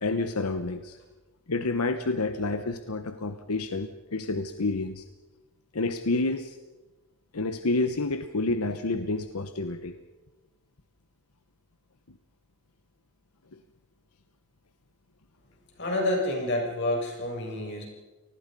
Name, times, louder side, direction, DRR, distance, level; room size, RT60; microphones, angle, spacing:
voice 1, 0.0-1.0 1.5-5.0 5.7-6.6 7.3-9.9, left 2 dB, 85° left, 9 dB, 1.1 m, -29 dB
voice 2, 15.8-17.8, left 1 dB, 50° left, 0 dB, 7.3 m, -29 dB
28.5 x 20.0 x 5.4 m, 1.2 s
head